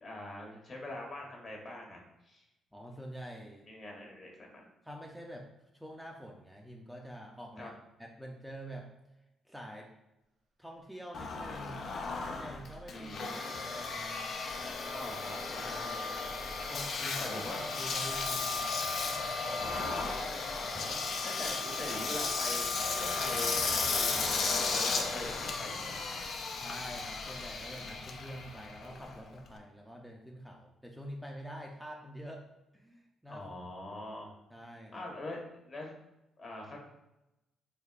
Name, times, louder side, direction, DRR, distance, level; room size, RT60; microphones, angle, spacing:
voice 1, 0.0-2.4 3.7-4.6 7.6-7.7 12.9-13.5 14.9-15.4 17.2-17.6 19.4-20.4 20.7-21.0 21.2-22.7 23.0-26.2 33.3-34.4 34.9-35.9 36.4-36.8, left 1 dB, 40° left, 0 dB, 1.0 m, -43 dB
voice 2, 2.7-3.7 4.8-8.9 9.5-9.9 10.6-11.9 12.3-14.3 15.6-16.2 16.7-18.7 26.5-32.4 32.7-33.7 34.5-35.0, equal, ahead, -1 dB, 0.5 m, -46 dB
Growling, 10.8-10.9 11.9-12.9 13.4-14.0 14.5-29.1, right 2 dB, 80° right, 0.9 m, -54 dB
Engine, 11.1-29.6, left 4 dB, 55° left, 0.4 m, -35 dB
3.7 x 3.4 x 2.4 m, 0.93 s
cardioid pair, 90°, 0 cm